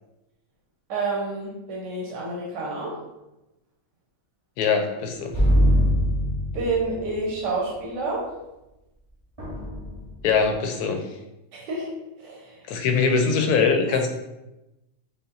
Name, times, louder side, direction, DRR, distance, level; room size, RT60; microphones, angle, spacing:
voice 1, 0.9-2.9 6.5-8.2 11.5-11.9 12.2-12.5, right 3 dB, 85° right, -3 dB, 1.5 m, -29 dB
voice 2, 4.6-5.4 10.2-11.1 12.7-14.1, left 5 dB, 75° left, 5 dB, 1.1 m, -22 dB
sound 1, 5.3-7.1 9.4-10.3, equal, 25° right, 0.8 m, -22 dB
5.4 x 2.1 x 3.8 m, 0.96 s
omnidirectional pair, 1.8 m